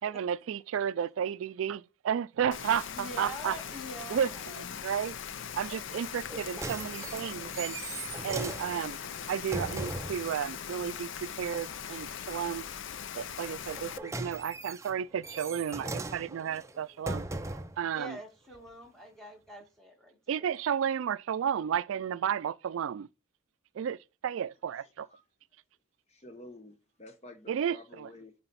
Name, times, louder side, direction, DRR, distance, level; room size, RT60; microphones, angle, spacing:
voice 1, 0.0-3.6 4.1-5.2 5.6-7.8 8.2-9.0 9.3-12.6 13.1-17.2 17.8-18.2 20.3-23.1 23.7-25.1 27.5-28.1, right 8 dB, 75° right, 0.3 m, -32 dB
Rain, 2.5-14.0, left 8 dB, 70° left, 0.5 m, -40 dB
voice 2, 2.9-4.9 18.0-20.5, right 1 dB, ahead, 1.9 m, -45 dB
sound 1, 6.2-10.3 13.6-17.8 18.5-18.6, right 2 dB, 15° right, 0.5 m, -39 dB
voice 3, 24.8-25.2 25.5-25.6 26.1-28.3, left 2 dB, 30° left, 0.8 m, -51 dB
9.7 x 4.0 x 4.1 m
head